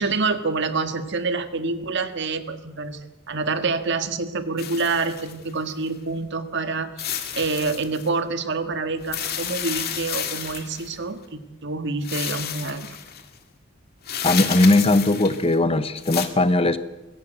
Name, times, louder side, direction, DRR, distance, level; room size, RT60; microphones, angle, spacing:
voice 1, 0.0-6.9 7.3-12.9, right 3 dB, 55° right, 9 dB, 1.7 m, -27 dB
sound 1, 4.6-5.9 7.0-8.1 9.0-11.0 12.0-13.2 14.0-15.6 16.0-16.3, left 9 dB, 50° left, 2.2 m, -31 dB
voice 2, 14.2-16.8, left 2 dB, 30° left, 13 dB, 0.9 m, -19 dB
21.5 x 17.0 x 8.0 m, 1.0 s
head